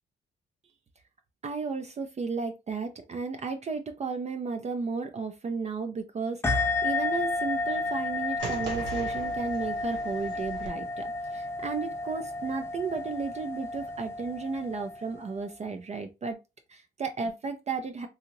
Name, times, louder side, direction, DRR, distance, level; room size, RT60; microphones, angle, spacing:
voice 1, 1.4-16.4 16.7-18.1, right 4 dB, 35° right, 0.5 m, -34 dB
sound 1, 6.4-15.5, left 2 dB, 10° left, 0.6 m, -32 dB
sound 2, 8.4-10.7, right 4 dB, 70° right, 1.1 m, -39 dB
2.8 x 2.3 x 3.0 m
cardioid pair, 90°, 20 cm